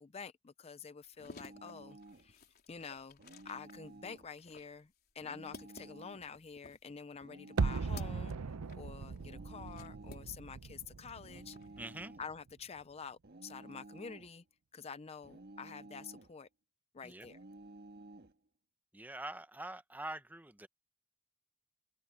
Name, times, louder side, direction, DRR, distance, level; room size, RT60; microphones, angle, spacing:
voice 1, 0.0-2.4 2.7-3.2 3.4-11.6 12.2-14.4 14.7-16.5 16.9-17.4, left 6 dB, 30° left, 0.5 m, -48 dB
sound 1, 1.0-10.7 11.0-11.9, left 3 dB, 45° left, 3.8 m, -57 dB
sound 2, 1.2-2.3 3.2-4.3 5.2-6.3 7.2-8.3 9.2-10.4 11.2-12.4 13.2-14.4 15.2-16.4 17.2-18.4, right 2 dB, 45° right, 1.6 m, -54 dB
sound 3, 7.6-12.5 12.8-12.9, right 4 dB, 85° right, 0.6 m, -38 dB
voice 2, 11.8-12.2 17.0-17.3 18.9-20.7, right 1 dB, 10° right, 0.7 m, -45 dB
head